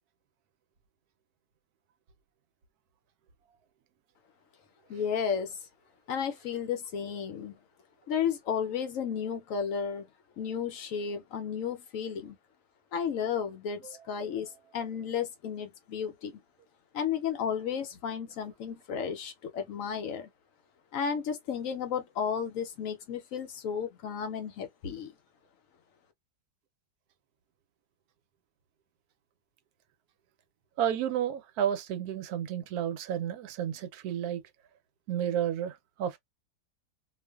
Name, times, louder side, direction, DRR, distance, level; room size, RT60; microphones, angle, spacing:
voice 1, 4.9-5.6 6.1-7.6 8.1-10.1 10.4-12.4 12.9-16.3 16.9-20.3 20.9-25.1, left 7 dB, 65° left, 0.9 m, -33 dB
voice 2, 30.8-34.4 35.1-36.2, right 10 dB, 75° right, 1.0 m, -31 dB
2.5 x 2.4 x 2.2 m
omnidirectional pair, 1.7 m